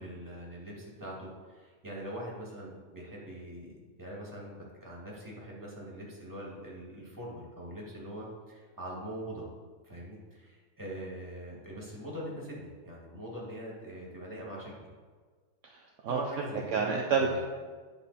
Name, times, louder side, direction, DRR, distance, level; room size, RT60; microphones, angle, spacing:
voice 1, 0.0-9.5 9.8-14.9 16.1-17.4, equal, 15° right, -4 dB, 2.1 m, -42 dB
voice 2, 15.6-16.4 16.7-17.4, right 5 dB, 65° right, 0 dB, 1.0 m, -30 dB
10.5 x 5.6 x 4.2 m, 1.5 s
omnidirectional pair, 1.5 m